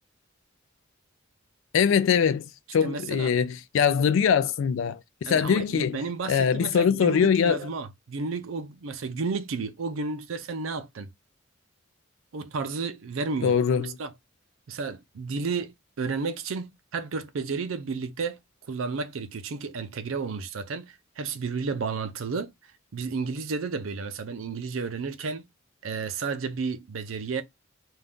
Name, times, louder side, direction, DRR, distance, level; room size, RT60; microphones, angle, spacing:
voice 1, 1.7-5.0 5.3-6.0 6.3-7.6 13.4-14.0, left 7 dB, 70° left, 0.3 m, -22 dB
voice 2, 2.8-3.3 4.0-4.1 5.2-11.1 12.3-13.6 13.8-14.1 14.7-18.4 18.7-22.5 22.9-25.5 25.8-27.4, right 4 dB, 80° right, 0.5 m, -32 dB
2.6 x 2.3 x 3.5 m
head